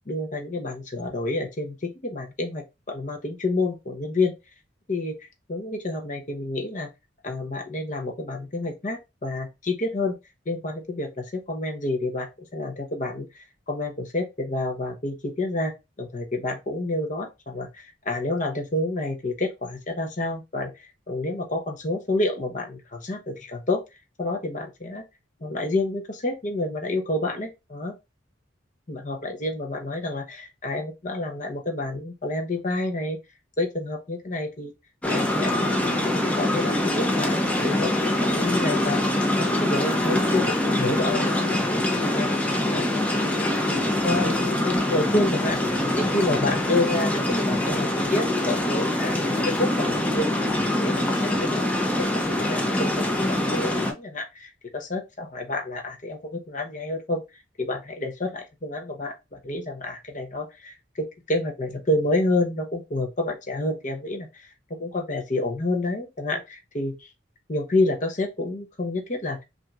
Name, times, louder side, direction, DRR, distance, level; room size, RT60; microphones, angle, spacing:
voice 1, 0.1-4.3 4.9-6.9 7.2-10.2 10.5-23.8 24.2-25.0 25.4-28.0 28.9-33.2 33.6-34.7 35.1-39.0 39.4-42.3 42.7-43.4 43.8-45.6 46.0-49.1 49.6-50.3 50.7-57.2 57.6-64.5 64.8-67.1 67.5-69.4, left 2 dB, 40° left, 1.0 m, -29 dB
sound 1, 35.0-53.9, left 1 dB, 5° left, 0.6 m, -24 dB
5.7 x 2.8 x 2.4 m
head